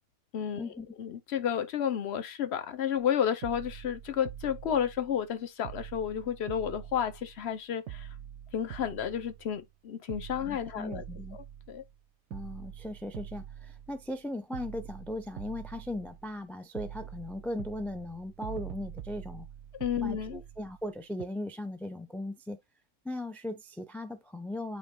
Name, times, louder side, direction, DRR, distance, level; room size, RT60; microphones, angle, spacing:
voice 1, 1.0-8.1 8.5-11.0 11.7-11.8 19.8-20.4, left 9 dB, 55° left, 1.0 m, -31 dB
sound 1, 3.0-3.1 3.4-5.3 5.6-7.6 7.9-9.7 10.1-12.0 12.3-14.2 14.5-16.4 16.7-20.9 21.2-21.3, right 11 dB, 65° right, 0.8 m, -45 dB
voice 2, 10.5-11.4 12.3-19.5 20.0-22.6 23.0-24.8, left 1 dB, ahead, 0.4 m, -38 dB
8.8 x 2.9 x 3.7 m
omnidirectional pair, 1.5 m